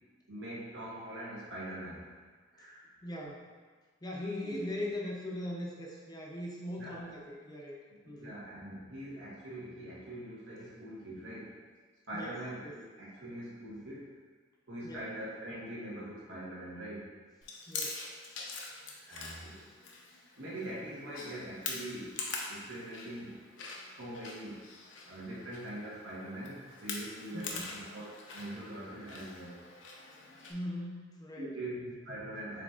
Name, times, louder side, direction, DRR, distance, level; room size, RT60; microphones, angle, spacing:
voice 1, 0.3-2.1 2.5-2.8 4.4-4.6 6.8-7.0 8.2-11.6 12.1-14.2 14.7-17.2 19.0-19.7 20.4-23.4 23.9-24.6 25.1-29.6 30.4-30.5 31.3-32.6, right 1 dB, 80° right, -7 dB, 1.3 m, -43 dB
voice 2, 3.0-3.5 4.0-7.8 8.1-8.4 12.1-12.4 12.6-12.8 14.8-15.0 17.7-18.0 27.3-27.7 30.5-31.5, left 1 dB, 20° left, -2 dB, 0.6 m, -40 dB
Chewing mastication, 17.4-30.5, left 4 dB, 75° left, 0.6 m, -44 dB
7.3 x 2.8 x 2.5 m, 1.4 s
head